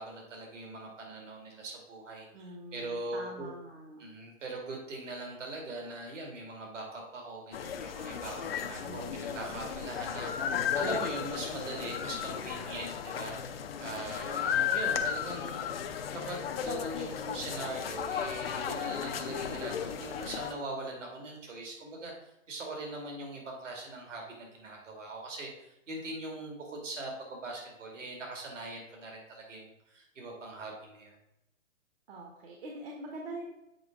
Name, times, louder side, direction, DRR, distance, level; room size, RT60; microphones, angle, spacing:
voice 1, 0.0-3.5 4.0-25.5 25.9-31.1, right 2 dB, 65° right, 0 dB, 2.4 m, -41 dB
voice 2, 2.3-4.0 8.6-9.5 32.1-33.4, right 1 dB, 45° right, 1 dB, 1.4 m, -44 dB
sound 1, 7.5-20.5, left 8 dB, 45° left, 0.6 m, -35 dB
7.8 x 5.0 x 3.7 m, 0.87 s
figure-of-eight pair, 130°, 40 cm